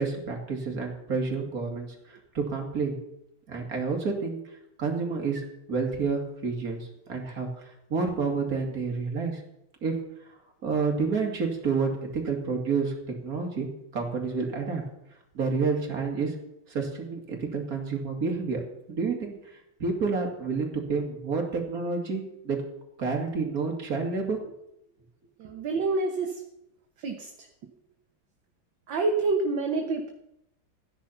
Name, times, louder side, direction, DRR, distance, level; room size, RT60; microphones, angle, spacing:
voice 1, 0.0-3.0 3.5-4.4 4.8-9.4 9.8-9.9 10.6-12.9 13.2-13.7 13.9-14.8 15.3-16.3 16.7-18.6 18.9-22.6 23.0-24.5, right 4 dB, 40° right, 1 dB, 2.8 m, -29 dB
voice 2, 25.4-26.4 27.0-27.3 28.9-30.1, right 3 dB, 65° right, 3 dB, 1.8 m, -27 dB
15.0 x 10.0 x 5.7 m, 0.82 s
omnidirectional pair, 2.4 m